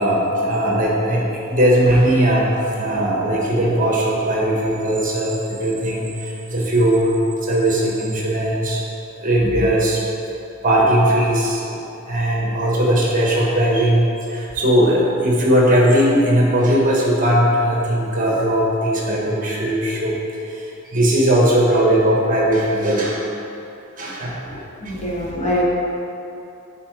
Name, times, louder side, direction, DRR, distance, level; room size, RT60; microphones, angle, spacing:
voice 1, 0.0-8.8 9.2-10.0 10.6-20.2 20.5-23.3 24.0-24.4 24.8-24.9, right 1 dB, 40° right, -3 dB, 1.2 m, -18 dB
voice 2, 24.5-25.6, equal, 30° left, -4 dB, 1.2 m, -25 dB
8.6 x 4.7 x 4.7 m, 2.8 s
head